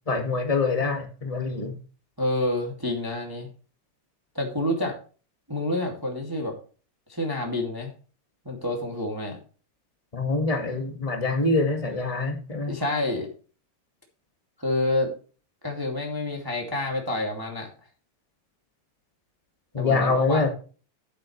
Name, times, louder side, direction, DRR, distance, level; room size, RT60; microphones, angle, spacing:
voice 1, 0.1-1.8 10.1-12.8 19.7-20.5, left 3 dB, 15° left, 4 dB, 1.3 m, -25 dB
voice 2, 2.2-3.5 4.3-5.0 5.5-6.6 7.1-7.9 8.4-9.4 12.7-13.3 14.6-15.1 15.6-17.7 19.8-20.5, left 1 dB, 10° right, 1 dB, 2.0 m, -28 dB
11.5 x 8.6 x 3.3 m, 0.37 s
omnidirectional pair, 3.3 m